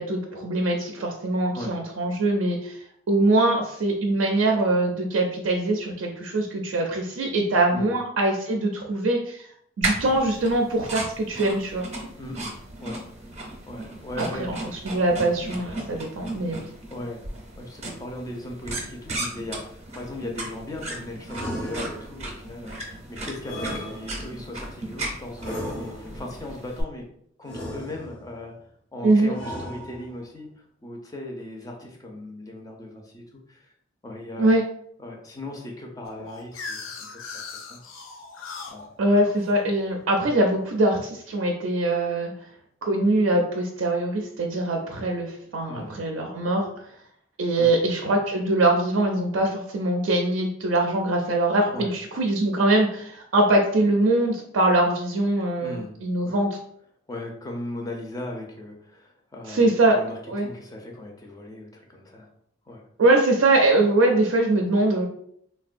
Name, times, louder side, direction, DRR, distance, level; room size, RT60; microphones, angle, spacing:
voice 1, 0.0-2.8 3.1-9.5 9.8-11.8 14.2-14.5 14.8-16.7 29.0-29.4 34.4-34.6 39.0-42.3 42.8-46.7 47.4-56.6 59.5-60.0 60.3-60.5 63.0-65.1, right 2 dB, 80° right, 1 dB, 0.4 m, -22 dB
sound 1, 9.8-26.8, right 2 dB, 35° right, 0.6 m, -36 dB
voice 2, 12.2-12.5 12.8-13.0 13.7-14.7 16.9-17.2 17.5-27.1 27.4-28.6 28.9-30.5 30.8-33.7 34.0-34.5 35.0-37.2 37.5-37.8 38.7-38.8 45.7-46.0 47.6-47.7 51.7-51.9 55.6-55.9 56.2-56.4 57.1-62.3 62.7-62.8, left 1 dB, 20° left, 0 dB, 0.5 m, -38 dB
sound 2, 21.3-22.3 23.4-24.5 25.4-26.3 27.5-28.4 29.3-30.3, equal, 60° left, 0.9 m, -35 dB
sound 3, 36.0-40.8, left 4 dB, 85° left, 0.5 m, -40 dB
3.3 x 2.2 x 2.4 m, 0.68 s
head